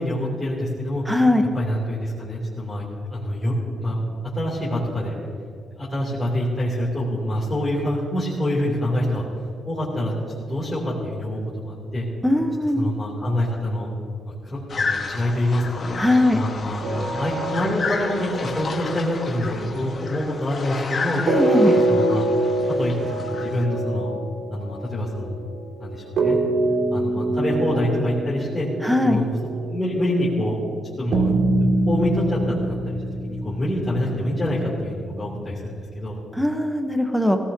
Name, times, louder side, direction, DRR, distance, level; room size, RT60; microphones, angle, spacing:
voice 1, 0.0-1.0 1.5-2.8 3.1-4.0 4.4-5.1 5.7-9.2 9.6-10.2 10.5-12.1 12.8-13.9 14.4-15.8 16.3-21.2 21.9-22.2 22.7-24.1 24.5-25.4 25.8-26.4 26.9-28.7 29.0-29.3 29.6-30.6 31.0-31.3 31.9-33.0 33.2-36.2, left 1 dB, 15° left, -8 dB, 3.0 m, -26 dB
voice 2, 1.1-1.5 12.2-12.9 16.0-16.4 21.3-21.8 28.8-29.2 36.4-37.4, left 1 dB, ahead, 5 dB, 1.0 m, -20 dB
sound 1, 14.7-23.6, left 4 dB, 40° left, 1.4 m, -32 dB
sound 2, 16.8-20.4 21.3-30.2 31.1-35.7, right 2 dB, 75° right, 2.2 m, -25 dB
18.5 x 17.0 x 2.8 m, 2.3 s
cardioid pair, 135°, 0 cm